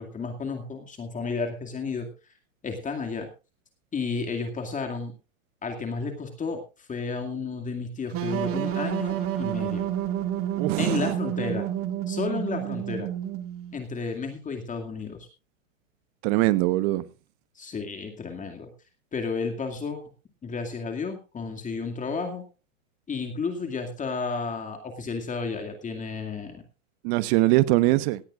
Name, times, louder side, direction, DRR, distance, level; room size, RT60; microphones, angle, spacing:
voice 1, 0.0-2.1 2.6-3.3 3.9-5.1 5.6-9.9 10.8-11.7 12.1-13.1 13.7-15.3 17.6-18.7 19.1-20.0 20.4-22.4 23.1-26.6, left 4 dB, 20° left, 2.3 m, -32 dB
sound 1, 8.1-13.8, right 11 dB, 35° right, 1.9 m, -29 dB
voice 2, 10.6-11.1 16.2-17.0 27.0-28.2, right 18 dB, 50° right, 1.1 m, -22 dB
18.0 x 16.0 x 2.5 m
hypercardioid pair, 115°, 41 cm